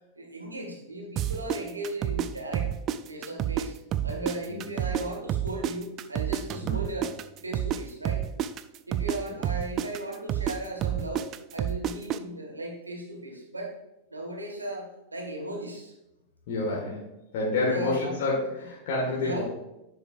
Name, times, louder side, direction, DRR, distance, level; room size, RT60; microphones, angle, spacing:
voice 1, 0.1-2.7 3.1-3.8 4.0-7.1 7.4-8.2 8.9-13.7 14.1-15.9 17.7-18.3 19.2-19.4, right 1 dB, 80° right, 0 dB, 1.8 m, -36 dB
sound 1, 1.2-3.7 3.9-7.8 8.0-12.2, right 11 dB, 35° right, 0.4 m, -29 dB
voice 2, 16.5-17.0 17.3-19.4, left 2 dB, 50° left, -4 dB, 1.8 m, -28 dB
10.5 x 6.5 x 2.6 m, 0.92 s
figure-of-eight pair, 90°, 0 cm